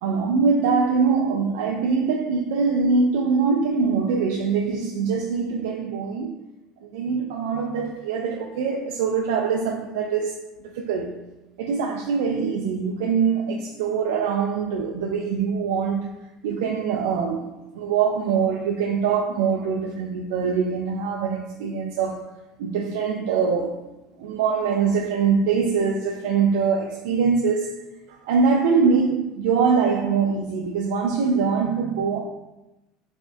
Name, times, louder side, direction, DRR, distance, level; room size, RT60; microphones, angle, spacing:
voice 1, 0.0-6.3 6.8-10.4 10.7-11.1 11.6-16.1 16.4-17.5 17.7-22.3 22.6-23.9 24.2-27.8 28.2-32.2, right 5 dB, 85° right, 0.3 m, -23 dB
4.2 x 2.5 x 2.3 m
cardioid pair, 165°, 0 cm